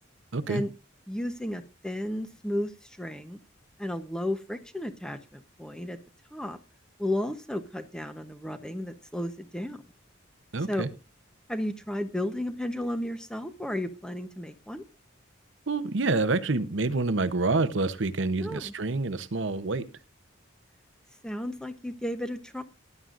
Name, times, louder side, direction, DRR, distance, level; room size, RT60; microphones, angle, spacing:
voice 1, 0.3-0.6 10.5-10.9 15.7-19.8, right 3 dB, 70° right, 13 dB, 0.9 m, -27 dB
voice 2, 1.1-3.4 3.8-6.0 6.3-6.6 7.0-9.8 10.7-10.9 11.5-14.8 18.4-18.7 21.2-22.6, left 1 dB, 5° left, 9 dB, 0.9 m, -33 dB
18.5 x 11.0 x 2.6 m, 0.28 s
head